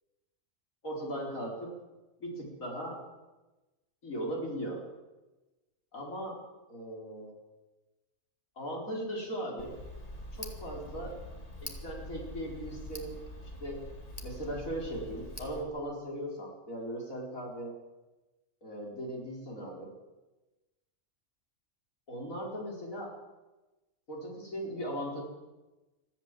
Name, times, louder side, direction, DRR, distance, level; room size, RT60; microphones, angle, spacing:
voice 1, 0.8-1.7 2.2-3.0 4.0-4.8 5.9-6.4 6.7-7.3 8.6-9.8 10.3-11.2 11.6-13.2 13.6-13.9 14.2-17.7 18.6-19.9 22.1-23.1 24.1-25.2, equal, 85° left, -1 dB, 5.0 m, -38 dB
Tick, 9.6-15.6, equal, 30° left, 2.3 m, -44 dB
23.0 x 14.5 x 7.7 m, 1.1 s
omnidirectional pair, 1.4 m